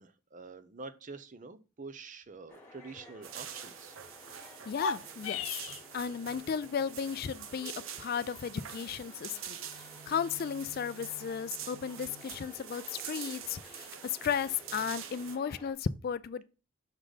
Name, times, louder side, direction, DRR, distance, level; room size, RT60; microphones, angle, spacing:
voice 1, 0.0-4.0, right 4 dB, 40° right, 0.6 m, -47 dB
sound 1, 2.5-15.7, left 1 dB, 10° left, 1.6 m, -55 dB
sound 2, 3.2-15.4, right 9 dB, 75° right, 0.7 m, -46 dB
voice 2, 4.4-5.6 5.9-16.4, left 7 dB, 50° left, 0.3 m, -35 dB
sound 3, 4.6-5.8, left 4 dB, 85° left, 0.7 m, -35 dB
6.3 x 4.0 x 4.9 m
head